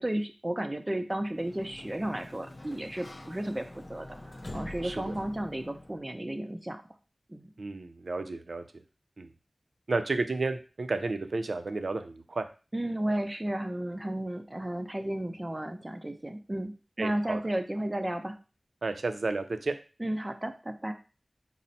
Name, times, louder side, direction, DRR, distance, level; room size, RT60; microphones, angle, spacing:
voice 1, 0.0-6.8 7.3-7.5 12.7-18.4 20.0-20.9, right 1 dB, 30° right, 6 dB, 0.5 m, -33 dB
Sliding door, 1.2-6.1, left 1 dB, 45° left, 0.5 m, -45 dB
voice 2, 4.8-5.2 7.6-8.6 9.2-9.3 9.9-12.5 17.0-17.4 18.8-19.7, right 3 dB, 85° right, 8 dB, 0.4 m, -32 dB
4.1 x 2.0 x 4.0 m, 0.33 s
wide cardioid pair, 45°, 0 cm